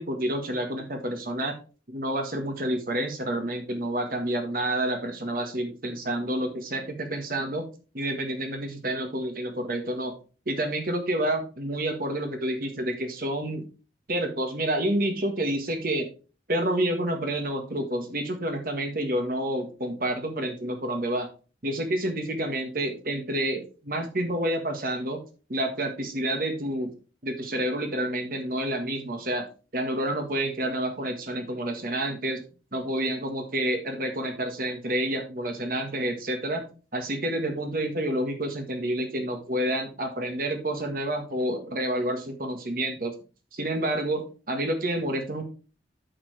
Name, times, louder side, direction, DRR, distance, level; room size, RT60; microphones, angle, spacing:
voice 1, 0.0-1.5 1.9-7.7 7.9-10.1 10.5-13.6 14.1-16.1 16.5-21.3 21.6-25.2 25.5-26.9 27.2-29.4 29.7-32.4 32.7-36.7 36.9-43.1 43.5-45.4, right 1 dB, 50° right, 5 dB, 1.6 m, -29 dB
8.6 x 6.6 x 3.3 m, 0.35 s
head